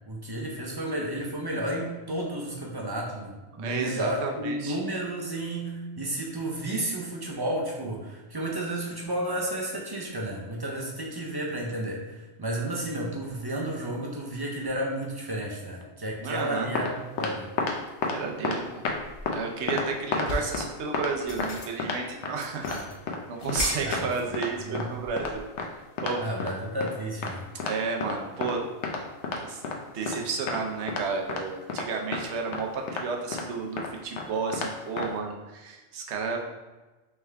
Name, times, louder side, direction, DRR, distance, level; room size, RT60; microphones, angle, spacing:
voice 1, 0.1-17.5 22.7-22.8 23.8-24.3 24.6-25.0 26.2-27.4, right 1 dB, 35° right, -2 dB, 0.4 m, -32 dB
voice 2, 3.6-4.8 16.2-16.7 18.1-18.8 19.3-22.6 23.3-25.5 26.0-26.2 27.6-28.6 29.4-29.6 29.9-36.4, right 5 dB, 80° right, 1 dB, 0.9 m, -32 dB
sound 1, 16.5-16.9 17.2-17.8 18.0-18.2 18.4-19.0 19.3-19.4 19.7-20.7 20.9-21.1 21.4-21.5 21.8-22.3 22.6-22.8 23.1-23.2 23.5-23.6 23.9-24.0 24.3-24.5 24.8-24.9 25.2-25.3 25.6-25.7 26.0-26.5 26.8-26.9 27.2-27.3 27.6-27.8 28.0-28.6 28.8-29.8 30.1-30.2 30.5-30.6 30.9-31.0 31.3-31.4 31.7-32.2 32.5-32.6 32.9-33.0 33.3-33.4 33.8-33.9 34.2-34.3 34.5-34.7 35.0-35.1, left 4 dB, 85° left, 0.9 m, -30 dB
sound 2, 17.9-18.1 18.6-19.6 20.0-20.7 21.1-22.0 22.4-24.3 24.6-25.6, left 2 dB, 60° left, 0.7 m, -37 dB
3.5 x 3.3 x 3.3 m, 1.2 s
omnidirectional pair, 1.1 m